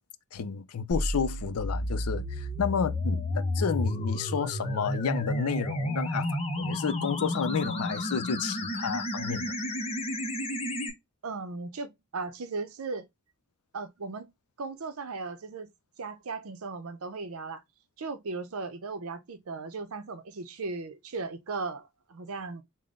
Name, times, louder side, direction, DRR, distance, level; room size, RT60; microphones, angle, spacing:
voice 1, 0.3-6.3 6.6-9.5, left 6 dB, 85° left, 0.4 m, -31 dB
sound 1, 0.9-10.9, left 1 dB, 30° left, 0.7 m, -31 dB
voice 2, 11.2-13.1 13.7-14.3 14.6-15.7 16.0-17.6 18.0-22.6, right 4 dB, 75° right, 0.6 m, -37 dB
3.8 x 2.1 x 3.6 m
head